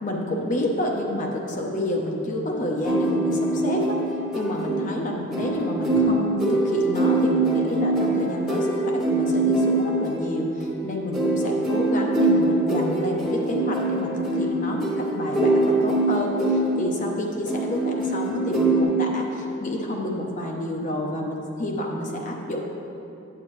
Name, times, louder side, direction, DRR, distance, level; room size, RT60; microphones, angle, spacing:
voice 1, 0.0-4.0 4.3-22.6, left 1 dB, 40° left, 0 dB, 0.8 m, -29 dB
sound 1, 2.8-18.8, right 2 dB, ahead, 1.2 m, -24 dB
8.8 x 8.5 x 3.1 m, 2.9 s
head